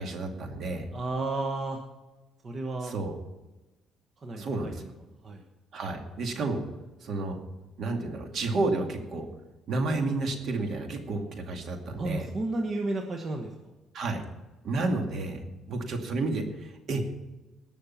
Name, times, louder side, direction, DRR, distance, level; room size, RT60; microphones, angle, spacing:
voice 1, 0.0-0.9 2.8-3.2 4.3-4.8 5.7-6.6 7.0-7.4 7.8-9.3 9.7-12.3 13.9-14.2 14.6-15.4 15.7-17.1, right 2 dB, 55° right, 4 dB, 2.3 m, -31 dB
voice 2, 0.9-1.8 2.4-2.9 4.2-4.9 5.2-5.4 12.0-13.5, right 2 dB, 35° right, 3 dB, 1.3 m, -32 dB
19.5 x 6.6 x 5.8 m, 1.1 s
cardioid pair, 120°, 0 cm